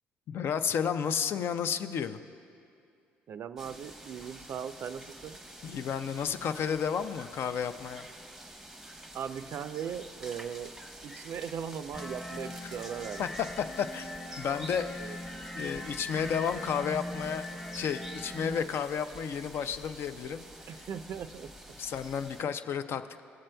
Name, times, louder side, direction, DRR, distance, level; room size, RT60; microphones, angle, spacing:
voice 1, 0.3-2.2 5.6-8.1 12.6-12.7 13.2-13.3 13.6-14.1 14.4-15.2 15.6-17.5 17.7-20.4 20.7-20.9 21.8-23.2, left 7 dB, 55° left, 10 dB, 0.4 m, -32 dB
voice 2, 3.3-5.4 9.1-10.7 11.0-13.2 15.0-15.2 20.7-21.5, right 8 dB, 55° right, 12 dB, 0.3 m, -38 dB
sound 1, 3.6-22.4, right 1 dB, 5° right, 0.8 m, -48 dB
sound 2, 11.9-18.6, left 1 dB, 15° left, 1.0 m, -41 dB
20.0 x 7.4 x 2.2 m, 2.5 s
supercardioid pair, 70°, 5 cm